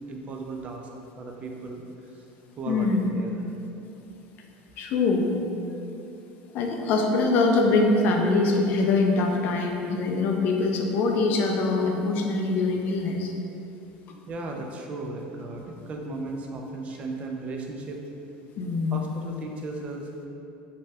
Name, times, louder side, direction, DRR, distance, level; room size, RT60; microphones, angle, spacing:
voice 1, 0.1-0.9 1.2-1.9 2.1-2.2 2.6-3.5 14.3-18.0 18.9-20.3, right 3 dB, 30° right, 1 dB, 0.3 m, -36 dB
voice 2, 2.7-3.1 4.8-5.3 6.5-13.3 18.6-19.1, left 3 dB, 50° left, 2 dB, 0.3 m, -23 dB
2.7 x 2.1 x 3.3 m, 2.8 s
supercardioid pair, 130°, 4 cm